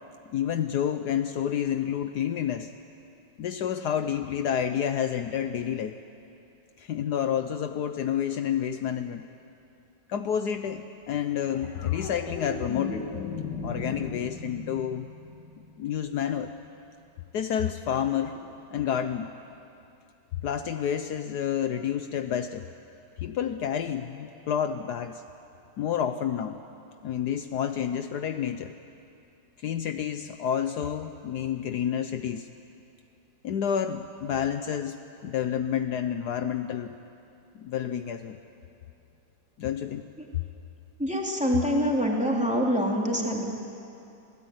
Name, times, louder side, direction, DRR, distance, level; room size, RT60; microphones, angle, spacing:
voice 1, 0.3-2.7 3.4-6.0 6.8-9.3 10.1-13.1 13.6-15.1 15.8-16.5 17.3-18.4 18.7-19.3 20.4-22.7 23.2-25.2 25.8-26.6 27.0-28.8 29.6-32.5 33.4-37.0 37.5-38.4 39.6-40.0, left 9 dB, 70° left, 8 dB, 1.3 m, -29 dB
sound 1, 11.5-16.0 18.4-18.5, left 4 dB, 85° left, 2.9 m, -37 dB
voice 2, 41.0-43.4, equal, 5° right, -1 dB, 3.1 m, -25 dB
27.0 x 18.0 x 9.4 m, 2.7 s
omnidirectional pair, 1.9 m